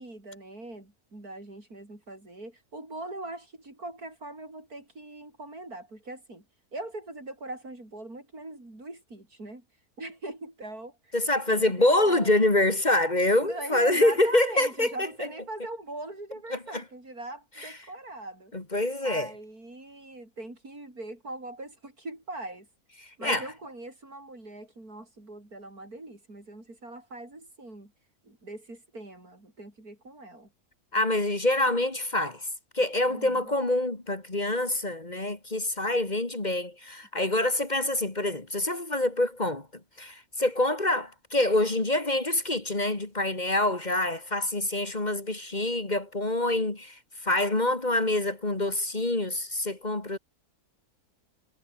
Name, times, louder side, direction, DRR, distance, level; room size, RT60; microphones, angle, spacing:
voice 1, 0.0-6.4 6.7-9.6 10.0-11.2 11.5-11.7 12.0-12.3 13.4-18.5 19.0-22.7 23.2-27.9 28.2-30.5 33.1-33.5, right 2 dB, 90° right, 7.8 m, -41 dB
voice 2, 11.1-14.9 16.5-16.8 18.5-19.3 23.2-23.4 30.9-32.4 32.7-39.7 40.0-47.0 47.2-50.2, left 1 dB, 30° left, 2.5 m, -26 dB
omnidirectional pair, 1.5 m